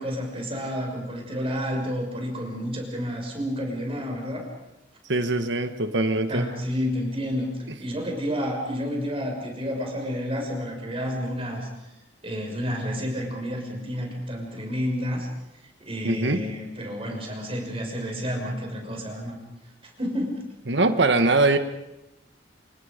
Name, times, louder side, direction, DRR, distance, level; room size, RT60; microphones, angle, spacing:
voice 1, 0.0-4.5 6.3-11.7 12.2-15.3 15.8-19.4 20.0-20.5, equal, 30° right, 2 dB, 6.0 m, -30 dB
voice 2, 5.1-6.5 16.0-16.4 20.7-21.6, right 2 dB, 70° right, 8 dB, 1.8 m, -22 dB
28.0 x 28.0 x 5.3 m, 0.90 s
head